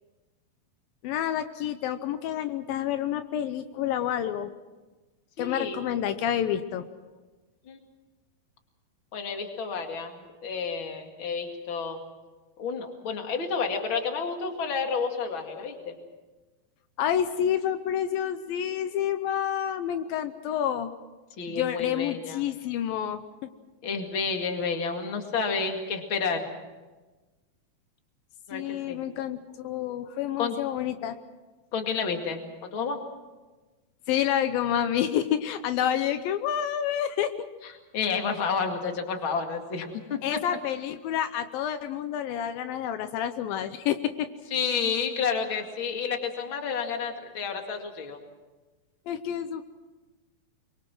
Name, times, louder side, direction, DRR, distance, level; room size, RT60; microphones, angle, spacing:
voice 1, 1.0-4.5 5.4-6.9 17.0-20.9 21.5-23.2 28.5-31.2 34.1-37.3 40.2-44.3 49.1-49.6, left 10 dB, 80° left, 9 dB, 2.6 m, -28 dB
voice 2, 5.4-5.8 7.7-7.8 9.1-12.0 12.6-15.9 21.4-22.4 23.8-26.5 28.5-28.6 28.9-29.0 30.4-30.6 31.7-33.0 37.6-40.4 44.5-48.2, left 5 dB, 40° left, 4 dB, 2.6 m, -30 dB
24.0 x 24.0 x 6.1 m, 1.2 s
omnidirectional pair, 4.2 m